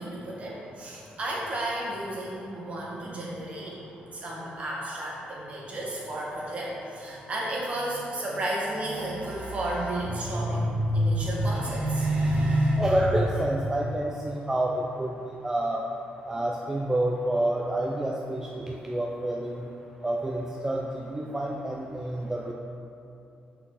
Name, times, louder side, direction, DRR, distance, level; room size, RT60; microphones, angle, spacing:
voice 1, 0.0-3.8 4.1-13.0, right 1 dB, 40° right, -4 dB, 1.6 m, -30 dB
voice 2, 12.8-15.8 16.3-19.7 20.0-20.8 21.1-22.5, right 1 dB, 15° right, -1 dB, 0.5 m, -28 dB
6.0 x 5.8 x 4.1 m, 2.7 s
cardioid pair, 125°, 3 cm